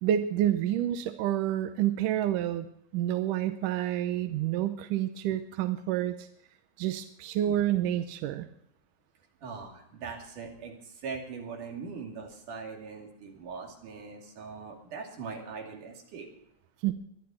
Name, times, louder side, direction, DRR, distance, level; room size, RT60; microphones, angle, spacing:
voice 1, 0.0-2.7 2.9-6.3 6.8-8.5 16.8-16.9, right 11 dB, 75° right, 9 dB, 2.0 m, -28 dB
voice 2, 9.4-16.3, right 5 dB, 60° right, 0 dB, 3.9 m, -41 dB
23.5 x 10.5 x 4.4 m, 0.71 s
omnidirectional pair, 4.3 m